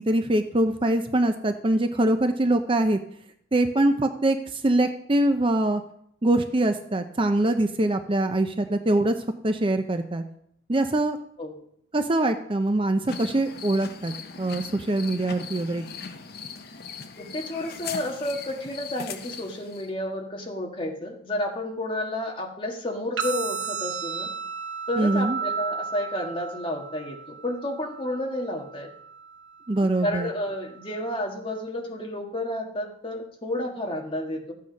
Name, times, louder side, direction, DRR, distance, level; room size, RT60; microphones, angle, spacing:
voice 1, 0.0-3.0 3.5-5.8 6.2-9.1 9.4-10.2 10.7-11.2 11.9-15.9 25.0-25.4 29.7-30.3, right 1 dB, 25° right, 7 dB, 0.6 m, -23 dB
sound 1, 13.1-19.9, left 5 dB, 55° left, 0.8 m, -39 dB
voice 2, 17.2-24.3 24.9-28.9 29.8-34.5, left 1 dB, 25° left, 1 dB, 1.8 m, -31 dB
sound 2, 23.2-31.2, right 6 dB, 70° right, 0.9 m, -35 dB
14.0 x 8.6 x 5.3 m, 0.71 s
head